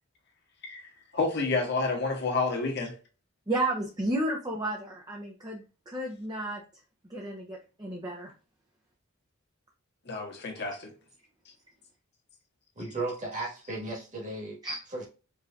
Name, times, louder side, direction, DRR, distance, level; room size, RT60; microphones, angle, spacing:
voice 1, 0.6-2.9 10.0-10.9, left 3 dB, 55° left, 1.5 m, -30 dB
voice 2, 3.5-6.6 7.0-8.3 14.6-14.8, right 1 dB, 20° right, 0.8 m, -32 dB
voice 3, 12.8-14.6 14.9-15.1, right 2 dB, 40° right, 1.8 m, -35 dB
4.8 x 3.2 x 2.5 m
head